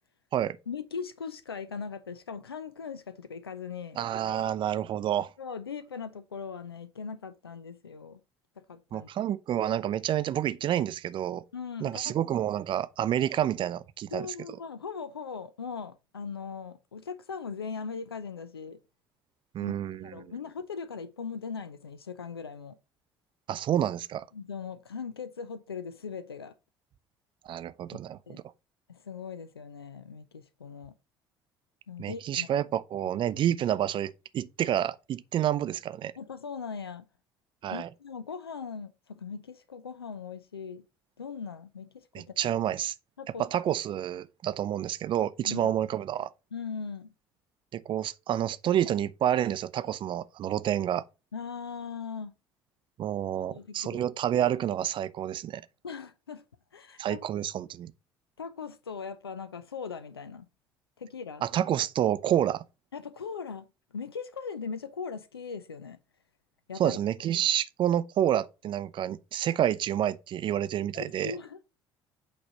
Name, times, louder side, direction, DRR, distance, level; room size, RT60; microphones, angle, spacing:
voice 1, 0.7-4.0 5.4-8.2 8.6-9.1 11.5-12.2 14.1-18.8 19.6-19.7 20.0-22.7 24.3-26.5 28.3-28.4 28.9-30.9 31.9-32.5 36.2-37.0 37.7-40.8 41.2-42.6 43.2-43.5 45.4-45.7 46.5-47.1 51.3-52.3 53.5-54.0 55.8-56.4 56.7-57.2 58.4-60.5 61.0-61.4 62.9-63.7 63.9-66.0 66.7-67.0 70.9-71.6, left 5 dB, 85° left, 0.4 m, -39 dB
voice 2, 4.0-5.3 8.9-11.4 11.8-14.3 19.5-20.3 23.5-24.3 27.5-28.4 32.0-36.1 37.6-37.9 42.1-42.9 43.4-46.3 47.7-51.0 53.0-55.6 57.0-57.9 61.4-62.6 66.8-71.3, right 11 dB, 40° right, 0.5 m, -29 dB
8.4 x 3.1 x 5.1 m
figure-of-eight pair, 55°, 13 cm